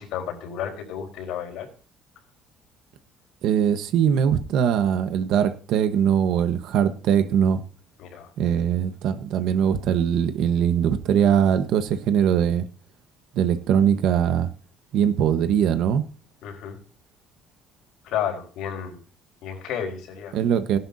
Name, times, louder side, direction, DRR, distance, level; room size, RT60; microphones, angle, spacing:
voice 1, 0.0-1.7 8.0-8.3 16.4-16.8 18.0-19.0 19.4-20.4, left 9 dB, 65° left, 5.0 m, -31 dB
voice 2, 3.4-7.6 8.4-12.7 13.3-14.5 14.9-16.0 20.3-20.8, right 8 dB, 60° right, 1.3 m, -21 dB
17.5 x 11.5 x 2.8 m
cardioid pair, 175°, 0 cm